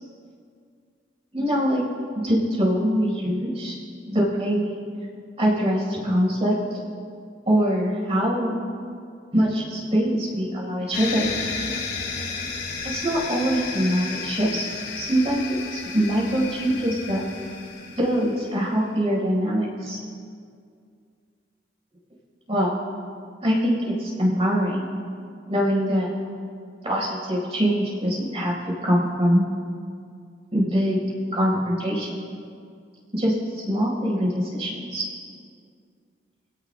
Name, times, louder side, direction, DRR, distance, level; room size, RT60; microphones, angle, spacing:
voice 1, 1.3-1.8 2.1-3.7 4.1-4.8 5.4-6.6 7.5-8.5 9.3-11.3 12.8-14.6 15.0-17.2 17.9-20.0 22.5-22.7 23.4-24.9 25.5-26.1 26.8-28.5 28.8-29.4 30.5-31.0 31.3-32.1 33.1-35.0, equal, 35° right, -3 dB, 4.3 m, -23 dB
sound 1, 10.9-18.5, left 4 dB, 65° left, 2.9 m, -33 dB
24.5 x 17.0 x 2.2 m, 2.3 s
head